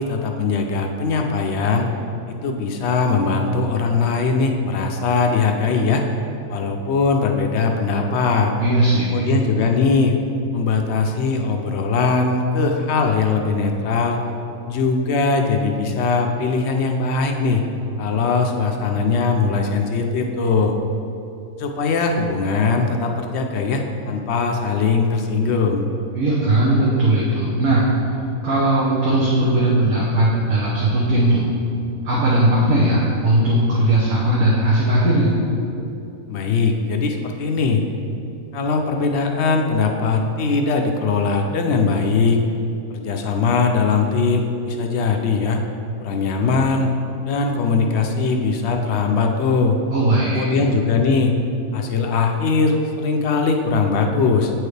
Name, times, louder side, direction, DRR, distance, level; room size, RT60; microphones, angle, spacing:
voice 1, 0.0-1.9 2.3-6.0 6.5-8.5 9.1-10.1 10.5-14.2 14.6-17.6 18.0-20.7 21.6-25.9 36.3-37.8 38.5-42.4 42.9-45.6 46.0-46.9 47.2-49.8 50.3-51.3 51.7-54.5, left 4 dB, 65° left, 4 dB, 0.7 m, -20 dB
voice 2, 8.6-9.4 26.1-28.0 28.4-31.5 32.0-35.4 49.9-50.6, right 1 dB, 85° right, -7 dB, 1.4 m, -18 dB
8.4 x 4.7 x 3.2 m, 2.7 s
omnidirectional pair, 1.5 m